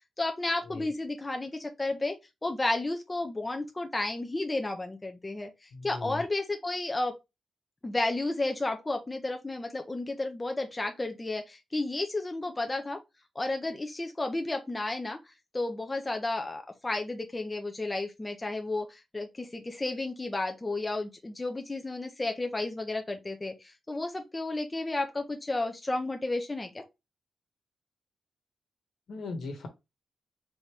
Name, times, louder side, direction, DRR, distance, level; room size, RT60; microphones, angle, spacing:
voice 1, 0.2-2.2 2.4-5.5 5.8-7.1 7.8-13.0 13.4-15.2 15.5-26.8, left 2 dB, 15° left, 0.6 m, -32 dB
voice 2, 5.7-6.2 29.1-29.7, left 3 dB, 70° left, 1.3 m, -38 dB
4.1 x 3.0 x 3.5 m
wide cardioid pair, 155°, 0 cm